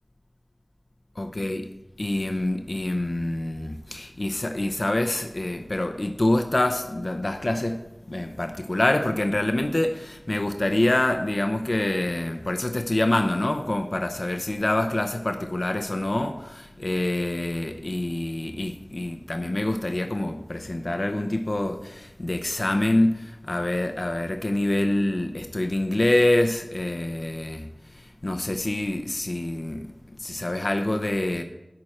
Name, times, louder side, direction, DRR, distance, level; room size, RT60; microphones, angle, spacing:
voice 1, 1.2-1.7 2.0-7.8 8.1-29.9 30.2-31.4, left 1 dB, 55° left, 0.7 m, -26 dB
11.0 x 4.3 x 7.7 m
wide cardioid pair, 40°, 0 cm